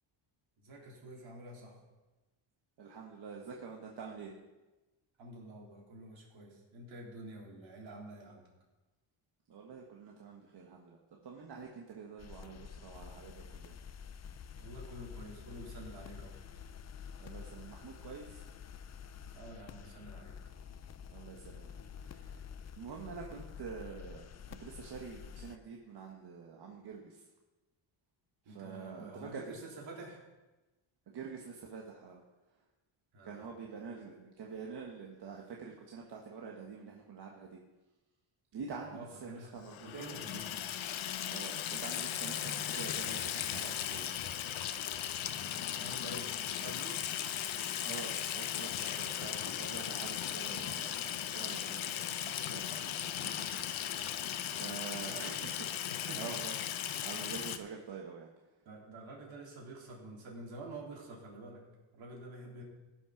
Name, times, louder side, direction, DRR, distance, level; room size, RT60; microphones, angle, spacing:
voice 1, 0.6-1.7 5.2-8.4 14.6-16.4 19.3-20.3 28.5-30.2 33.1-33.5 38.8-39.5 39.8-40.5 45.7-47.0 55.1-55.4 55.9-56.3 57.1-57.2 58.7-61.6 61.9-62.6, right 2 dB, 70° right, -3 dB, 3.8 m, -48 dB
voice 2, 2.8-4.3 9.5-13.8 17.2-18.4 21.1-22.5 22.8-27.2 28.4-29.5 31.1-32.2 33.2-37.6 38.5-40.1 41.3-44.2 47.8-54.2 54.5-56.5 57.0-58.3, right 5 dB, 55° right, -1 dB, 1.4 m, -47 dB
sound 1, 12.2-25.6, left 7 dB, 35° left, 0.5 m, -49 dB
Water tap faucet / Sink (filling or washing), 39.7-57.6, left 10 dB, 75° left, 0.9 m, -37 dB
16.0 x 6.1 x 5.9 m, 1.1 s
cardioid pair, 135°, 48 cm